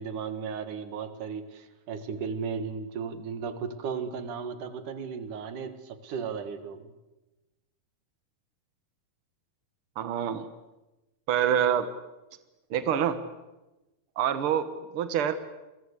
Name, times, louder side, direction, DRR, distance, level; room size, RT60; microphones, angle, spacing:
voice 1, 0.0-6.9, right 6 dB, 60° right, 10 dB, 3.0 m, -35 dB
voice 2, 10.0-10.5 11.3-11.9 12.7-13.2 14.2-15.3, right 9 dB, 85° right, 11 dB, 1.2 m, -26 dB
29.0 x 22.0 x 8.3 m, 1.0 s
omnidirectional pair, 4.5 m